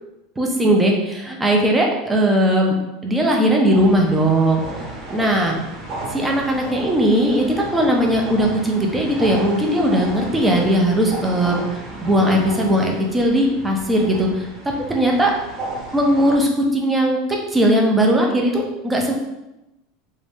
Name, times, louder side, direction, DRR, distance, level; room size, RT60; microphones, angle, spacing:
voice 1, 0.4-2.7 3.0-4.6 5.1-5.6 6.1-7.4 7.7-11.6 12.0-14.5 14.9-15.3 15.9-17.2 17.5-19.1, right 1 dB, 10° right, 0 dB, 0.5 m, -18 dB
sound 1, 3.7-16.4, right 2 dB, 40° right, 0.9 m, -34 dB
3.0 x 2.7 x 3.4 m, 0.95 s
supercardioid pair, 160°, 0 cm